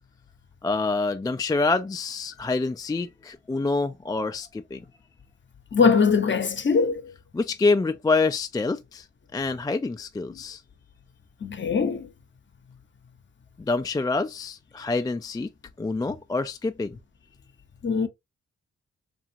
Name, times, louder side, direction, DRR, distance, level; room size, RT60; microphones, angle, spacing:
voice 1, 0.6-4.8 7.3-9.0 9.3-10.6 13.6-15.5 15.8-17.0, left 3 dB, 15° left, 0.3 m, -26 dB
voice 2, 5.7-7.0 11.4-12.1 17.8-18.1, left 5 dB, 40° left, 0.8 m, -21 dB
2.5 x 2.4 x 2.8 m
supercardioid pair, 45°, 29 cm